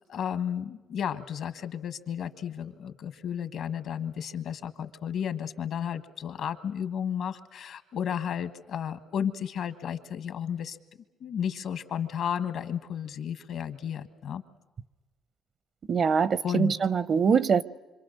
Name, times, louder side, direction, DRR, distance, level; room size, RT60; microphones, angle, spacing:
voice 1, 0.1-10.8 11.2-14.4 16.4-16.7, left 8 dB, 70° left, 1.4 m, -33 dB
voice 2, 15.9-17.6, right 6 dB, 50° right, 0.7 m, -23 dB
26.0 x 26.0 x 6.6 m
cardioid pair, 90°, 0 cm